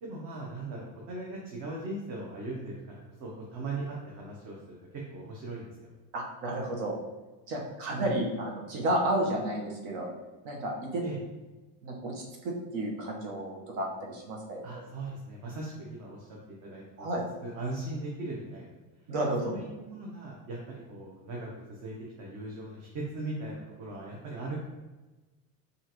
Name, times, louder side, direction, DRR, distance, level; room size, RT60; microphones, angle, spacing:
voice 1, 0.0-5.9 7.9-8.1 11.0-11.2 14.6-16.3 16.6-17.0 17.4-18.7 19.4-24.6, right 2 dB, 55° right, -3 dB, 1.1 m, -39 dB
voice 2, 6.1-6.9 7.5-10.1 10.4-11.0 11.8-14.6 17.0-17.2 19.1-19.5, right 1 dB, 80° right, -1 dB, 1.2 m, -32 dB
5.4 x 2.6 x 3.0 m, 1.2 s
cardioid pair, 120°, 37 cm